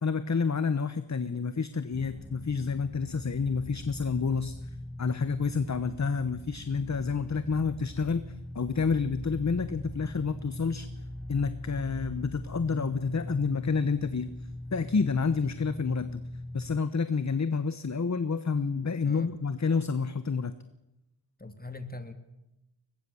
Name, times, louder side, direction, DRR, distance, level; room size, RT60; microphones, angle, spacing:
voice 1, 0.0-10.9 11.3-14.3 14.7-16.2 16.5-20.5, left 5 dB, 35° left, 12 dB, 1.2 m, -29 dB
sound 1, 1.9-16.8, left 1 dB, ahead, 0.9 m, -41 dB
voice 2, 21.4-22.1, left 2 dB, 20° left, 8 dB, 3.3 m, -41 dB
23.5 x 21.0 x 7.2 m, 0.91 s
wide cardioid pair, 75°, 48 cm